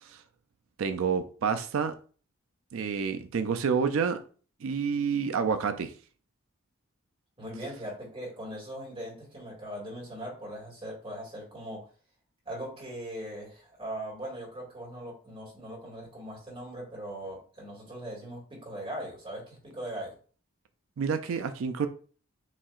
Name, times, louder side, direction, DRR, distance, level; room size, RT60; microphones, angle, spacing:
voice 1, 0.8-1.9 2.7-4.2 4.6-5.9 21.0-21.9, right 6 dB, 65° right, 0.4 m, -28 dB
voice 2, 7.4-11.9 12.5-20.1, right 1 dB, 25° right, 1.9 m, -40 dB
7.2 x 2.7 x 2.4 m
head